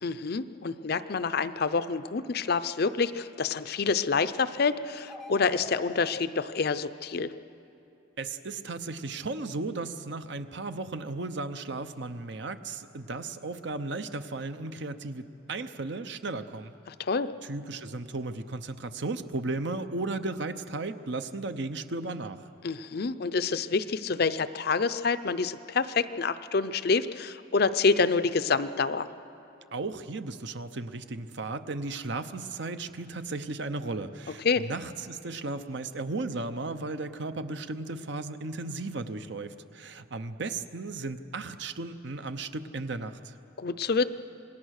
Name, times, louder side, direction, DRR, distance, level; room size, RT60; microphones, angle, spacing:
voice 1, 0.0-7.3 16.9-17.3 22.6-29.1 34.4-34.6 43.6-44.0, left 4 dB, 55° left, 12 dB, 0.6 m, -27 dB
sound 1, 5.0-6.2, left 1 dB, ahead, 0.5 m, -45 dB
voice 2, 8.2-16.7 17.4-22.4 29.7-43.3, right 3 dB, 60° right, 10 dB, 0.8 m, -35 dB
27.0 x 20.5 x 6.5 m, 2.9 s
head